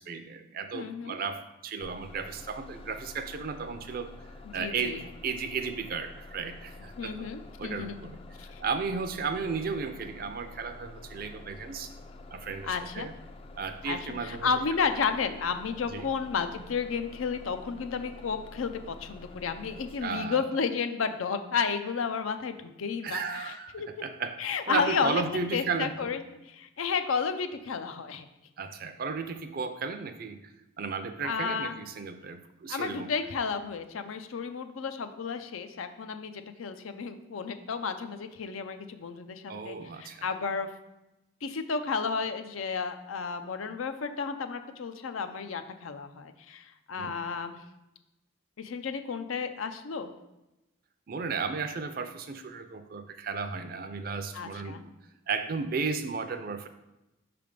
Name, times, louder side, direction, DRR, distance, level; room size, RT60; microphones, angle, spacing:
voice 1, 0.0-4.1 4.5-7.3 7.6-8.2 8.6-11.9 12.3-13.1 13.6-14.5 15.9-16.1 20.0-20.4 23.0-23.7 24.0-24.4 24.7-26.1 28.6-30.5 30.8-33.1 39.5-40.3 47.0-47.2 51.1-54.9 55.3-56.7, right 5 dB, 45° right, 9 dB, 0.4 m, -34 dB
voice 2, 0.7-1.2 4.5-5.0 7.0-8.0 8.4-8.6 12.6-13.1 13.9-24.0 24.4-26.2 26.5-28.3 31.2-31.7 32.7-40.7 41.4-47.6 48.6-50.1 54.3-54.8, left 5 dB, 85° left, 9 dB, 0.5 m, -32 dB
Bus, 1.8-20.0, left 2 dB, 25° left, 0.3 m, -48 dB
5.6 x 3.4 x 5.1 m, 0.96 s
head